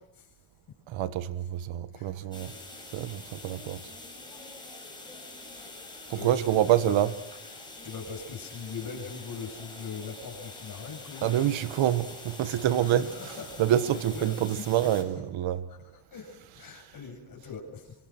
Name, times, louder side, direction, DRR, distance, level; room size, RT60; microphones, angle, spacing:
voice 1, 0.9-2.5 2.9-3.8 6.1-7.2 11.2-15.6, right 11 dB, 70° right, 1.7 m, -27 dB
sound 1, 2.3-15.0, left 2 dB, 10° left, 7.0 m, -45 dB
voice 2, 5.6-6.4 6.8-6.9 7.8-11.3 12.4-13.5 14.1-14.6 16.1-17.8, left 5 dB, 45° left, 7.8 m, -41 dB
27.0 x 25.0 x 6.2 m
cardioid pair, 140°, 48 cm